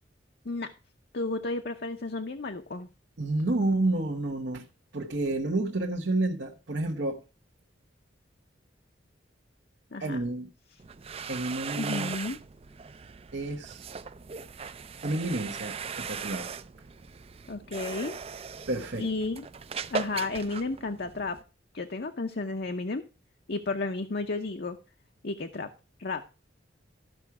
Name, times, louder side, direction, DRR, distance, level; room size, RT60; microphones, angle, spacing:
voice 1, 1.1-2.9 9.9-10.2 11.8-12.4 17.5-18.2 19.0-19.5 19.9-21.4 21.7-23.0 23.5-24.8 25.2-25.7 26.0-26.2, left 3 dB, 60° left, 0.7 m, -32 dB
voice 2, 3.2-4.7 4.9-7.2 10.0-10.5 11.3-12.1 13.3-13.9 15.0-16.5 18.7-19.1, right 2 dB, 70° right, 1.0 m, -30 dB
sound 1, 10.8-21.4, right 6 dB, 35° right, 0.4 m, -39 dB
13.5 x 5.8 x 4.7 m
head